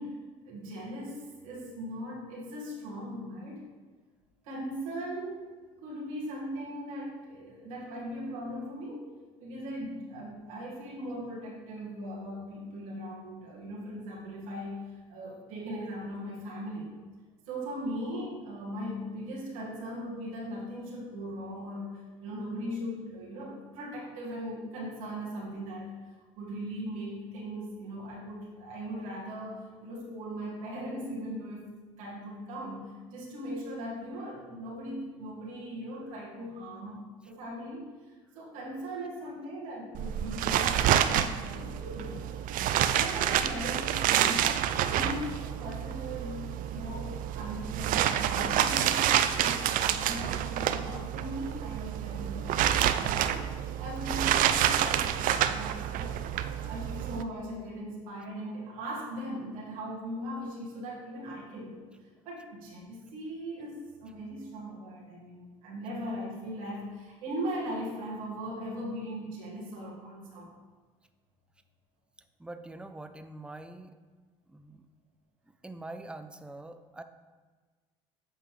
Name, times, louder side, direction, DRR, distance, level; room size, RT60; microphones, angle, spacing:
voice 1, 0.0-3.6 4.4-5.5 5.8-9.1 9.4-16.9 17.5-31.7 32.0-42.4 42.7-44.5 44.9-52.6 52.9-70.5, equal, 80° right, -5 dB, 1.9 m, -39 dB
sound 1, 39.9-57.2, right 10 dB, 55° right, 0.5 m, -28 dB
voice 2, 72.4-73.9 74.5-74.8 75.5-77.0, right 2 dB, 5° right, 8 dB, 0.6 m, -44 dB
8.1 x 5.6 x 3.3 m, 1.4 s
hypercardioid pair, 65°, 17 cm